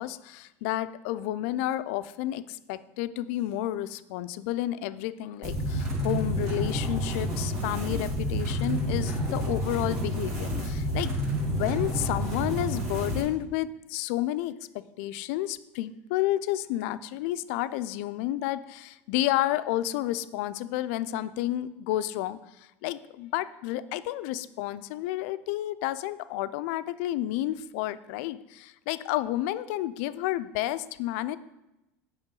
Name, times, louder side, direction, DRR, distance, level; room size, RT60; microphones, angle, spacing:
voice 1, 0.0-11.1 11.5-31.4, left 14 dB, 70° left, 14 dB, 0.4 m, -31 dB
sound 1, 5.4-13.2, equal, 60° right, 2.6 m, -29 dB
8.0 x 5.6 x 3.8 m, 0.94 s
supercardioid pair, 105°, 8 cm